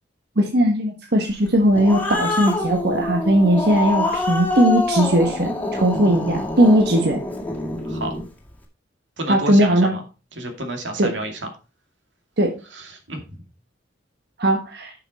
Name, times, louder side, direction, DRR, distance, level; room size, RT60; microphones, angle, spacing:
voice 1, 0.4-7.2 9.3-9.9 11.0-11.1 12.4-12.5 14.4-14.9, right 1 dB, 60° right, 2 dB, 1.4 m, -18 dB
Growling, 1.5-8.3, left 2 dB, 10° left, 2.1 m, -26 dB
voice 2, 7.8-8.2 9.2-10.0 10.3-11.5 12.7-13.2, right 1 dB, 85° right, 4 dB, 2.3 m, -30 dB
10.5 x 6.0 x 4.2 m, 0.32 s
head